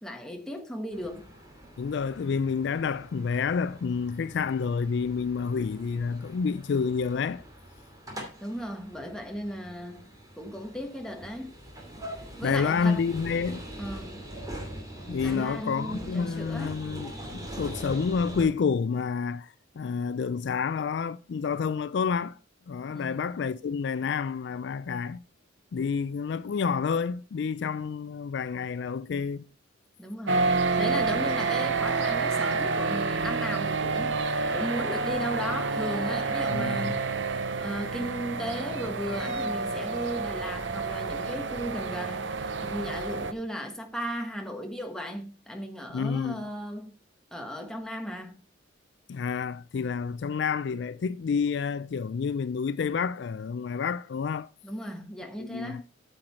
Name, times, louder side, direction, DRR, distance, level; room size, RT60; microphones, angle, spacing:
voice 1, 0.0-1.3 8.4-10.1 10.4-11.5 12.4-13.0 13.8-14.2 15.2-16.7 22.9-23.3 30.0-37.2 37.6-47.0 47.3-48.4 54.6-55.8, equal, 5° left, 1.3 m, -36 dB
sound 1, 0.9-18.4, right 1 dB, 20° right, 2.7 m, -43 dB
voice 2, 1.8-7.4 12.4-13.6 15.1-22.4 22.7-25.2 25.7-29.4 36.5-36.9 45.9-46.4 49.1-54.5 55.4-55.8, left 5 dB, 60° left, 0.3 m, -29 dB
sound 2, 30.3-43.3, right 4 dB, 65° right, 0.8 m, -29 dB
8.8 x 7.8 x 4.3 m
head